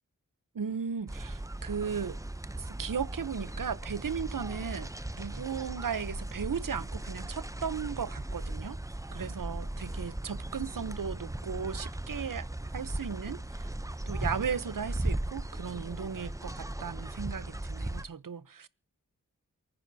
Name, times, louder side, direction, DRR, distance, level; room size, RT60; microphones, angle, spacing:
voice 1, 0.5-2.2 2.6-8.8 9.1-12.5 12.7-13.7 14.1-18.7, right 6 dB, 80° right, 0.8 m, -36 dB
sound 1, 1.1-18.0, right 1 dB, 10° right, 0.6 m, -37 dB
28.5 x 9.7 x 2.7 m
wide cardioid pair, 60°, 33 cm